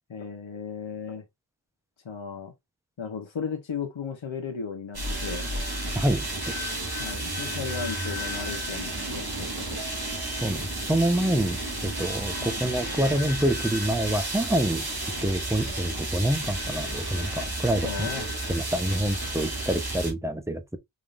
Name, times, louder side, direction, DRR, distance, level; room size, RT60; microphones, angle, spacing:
voice 1, 0.1-1.2 2.0-2.5 3.0-5.5 7.0-9.8 12.4-12.5 17.8-18.3, left 6 dB, 70° left, 1.0 m, -35 dB
sound 1, 4.9-20.1, right 1 dB, 50° right, 2.2 m, -32 dB
voice 2, 5.9-6.5 10.4-14.9 15.2-18.1 18.5-20.8, right 1 dB, 5° right, 0.8 m, -27 dB
5.1 x 3.7 x 2.5 m
wide cardioid pair, 45°, 48 cm